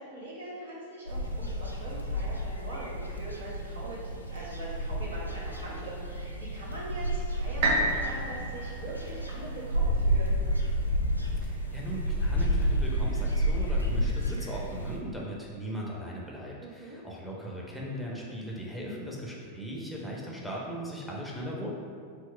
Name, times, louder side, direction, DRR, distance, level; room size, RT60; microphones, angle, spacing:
voice 1, 0.0-4.0 4.3-10.4 16.6-17.0, right 1 dB, 70° right, -6 dB, 1.1 m, -42 dB
sound 1, 1.1-15.0, equal, 90° left, 0.4 m, -30 dB
sound 2, 7.6-11.6 12.1-12.2, right 2 dB, 50° right, 0.5 m, -32 dB
voice 2, 11.4-21.7, equal, ahead, -4 dB, 0.8 m, -38 dB
4.6 x 2.0 x 4.4 m, 2.2 s
figure-of-eight pair, 90°, 0 cm